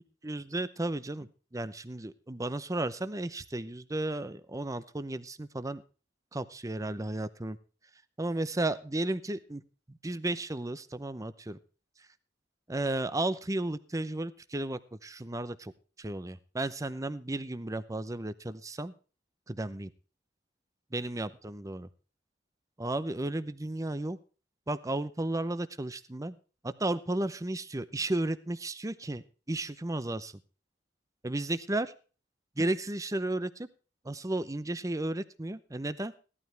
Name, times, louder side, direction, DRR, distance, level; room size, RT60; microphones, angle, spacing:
voice 1, 0.2-5.8 6.3-7.6 8.2-9.6 10.0-11.6 12.7-15.7 16.0-18.9 19.5-19.9 20.9-21.9 22.8-24.2 24.7-26.4 26.6-30.3 31.2-31.9 32.6-33.7 34.0-36.1, right 2 dB, 20° right, 14 dB, 0.7 m, -33 dB
16.5 x 12.5 x 3.4 m, 0.37 s
head